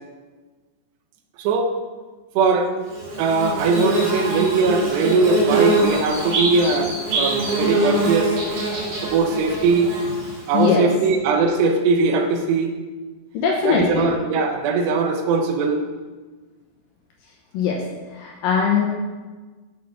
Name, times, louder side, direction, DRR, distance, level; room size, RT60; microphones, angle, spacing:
voice 1, 1.4-1.7 2.4-2.7 3.2-8.4 9.0-9.9 10.5-12.8 13.6-15.8, right 3 dB, 80° right, 4 dB, 3.0 m, -20 dB
Bird / Buzz, 2.9-10.6, right 2 dB, 55° right, 3.9 m, -23 dB
voice 2, 10.5-10.9 13.3-14.1 17.5-17.8 18.1-18.9, left 6 dB, 75° left, -1 dB, 2.2 m, -20 dB
7.5 x 6.3 x 5.9 m, 1.3 s
omnidirectional pair, 4.8 m